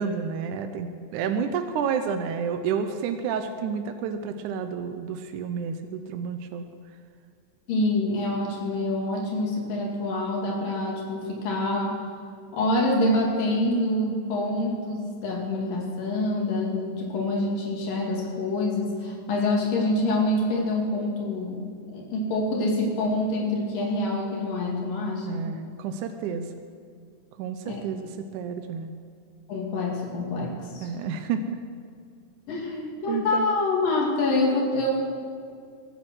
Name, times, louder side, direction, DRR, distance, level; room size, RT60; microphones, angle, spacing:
voice 1, 0.0-6.7 25.2-26.5 27.4-28.9 30.8-31.6 33.1-33.5, right 6 dB, 75° right, 7 dB, 2.0 m, -30 dB
voice 2, 7.7-12.1 12.5-25.5 27.7-27.8 29.5-30.9 32.5-35.0, left 2 dB, 80° left, -2 dB, 4.1 m, -26 dB
23.0 x 9.3 x 6.2 m, 2.3 s
omnidirectional pair, 3.9 m